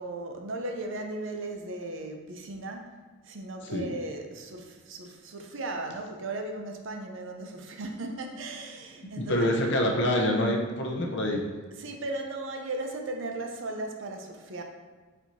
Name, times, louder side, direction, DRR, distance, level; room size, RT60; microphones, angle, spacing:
voice 1, 0.0-2.9 3.2-9.5 11.8-14.6, right 2 dB, 65° right, 3 dB, 0.5 m, -36 dB
voice 2, 9.2-11.5, left 1 dB, 55° left, 1 dB, 0.6 m, -26 dB
4.5 x 4.2 x 2.6 m, 1.4 s
head